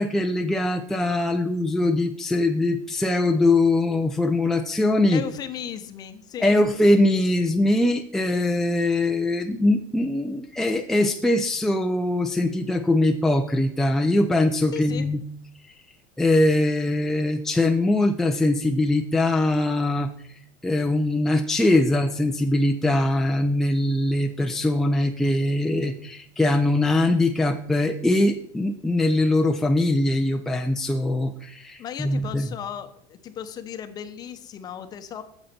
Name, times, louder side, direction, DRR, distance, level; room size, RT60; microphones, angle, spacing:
voice 1, 0.0-5.2 6.4-15.2 16.2-20.1 20.6-32.5, left 2 dB, 5° left, 3 dB, 0.4 m, -22 dB
voice 2, 5.1-6.7 14.7-15.1 31.8-35.2, left 9 dB, 35° left, 9 dB, 0.8 m, -36 dB
8.5 x 7.1 x 4.3 m, 0.66 s
cardioid pair, 140°, 12 cm